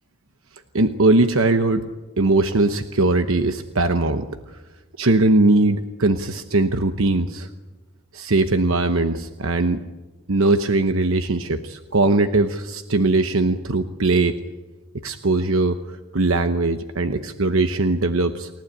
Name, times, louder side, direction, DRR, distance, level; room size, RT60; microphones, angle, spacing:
voice 1, 0.7-1.8 2.2-4.3 5.0-7.5 8.1-9.8 10.3-14.4 15.0-18.5, right 2 dB, 75° right, 8 dB, 1.0 m, -20 dB
29.0 x 15.0 x 8.9 m, 1.2 s
head